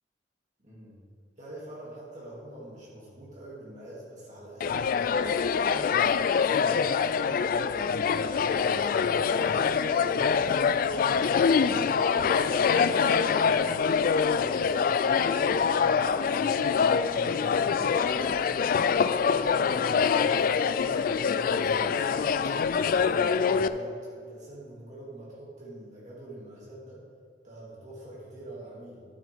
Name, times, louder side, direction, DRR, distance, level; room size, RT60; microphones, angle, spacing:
voice 1, 0.6-1.0 1.4-7.3 7.8-10.9 11.3-13.9 14.3-22.3 22.8-27.0 27.4-29.0, right 1 dB, 45° right, -6 dB, 2.3 m, -45 dB
sound 1, 4.6-23.7, left 6 dB, 50° left, 0.3 m, -25 dB
11.5 x 7.4 x 3.4 m, 2.3 s
head